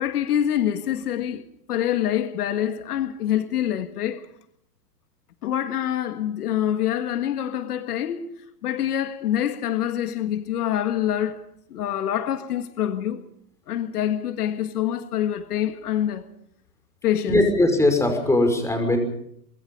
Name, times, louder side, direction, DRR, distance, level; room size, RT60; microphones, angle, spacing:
voice 1, 0.0-1.4 1.7-4.3 5.4-8.3 8.6-11.4 11.7-13.2 13.7-16.2 17.0-17.4, left 11 dB, 70° left, 1.9 m, -25 dB
voice 2, 17.3-19.0, left 1 dB, 5° left, 5.8 m, -20 dB
24.0 x 22.0 x 5.6 m
hypercardioid pair, 115°, 48 cm